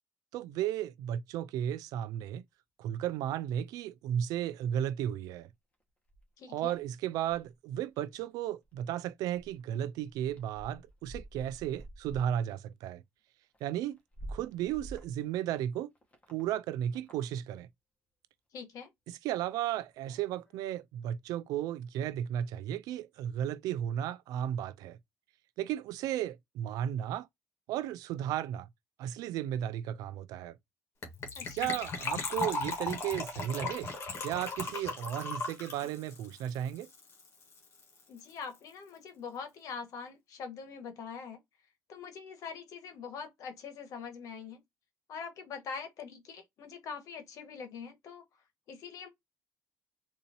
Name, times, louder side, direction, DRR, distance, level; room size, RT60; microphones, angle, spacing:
voice 1, 0.3-2.4 2.8-5.5 6.5-13.0 13.6-14.0 14.3-15.9 16.3-17.7 19.1-25.0 25.6-27.3 27.7-28.7 29.0-30.6 31.5-33.9 34.2-36.9, right 11 dB, 80° right, 0.4 m, -34 dB
sound 1, 3.7-3.8 4.1-4.8 5.1-5.2 5.7-5.8 6.1-6.2 6.7-7.5 7.9-8.4 8.6-9.1 9.4-9.6 10.0-12.3 12.6-12.7 13.5-15.2 15.9-16.4 16.9-17.4 19.7-20.6, right 1 dB, 20° left, 1.4 m, -49 dB
voice 2, 6.4-6.7 18.5-18.9 31.3-31.8 38.1-41.4 41.9-44.6 45.1-48.2 48.7-49.1, left 6 dB, 65° left, 1.2 m, -43 dB
Gurgling / Trickle dribble / Fill (with liquid), 31.0-37.3 37.5-37.6 37.8-38.0 38.3-38.4, left 3 dB, 45° left, 1.5 m, -37 dB
3.8 x 2.7 x 2.7 m
cardioid pair, 110°, 6 cm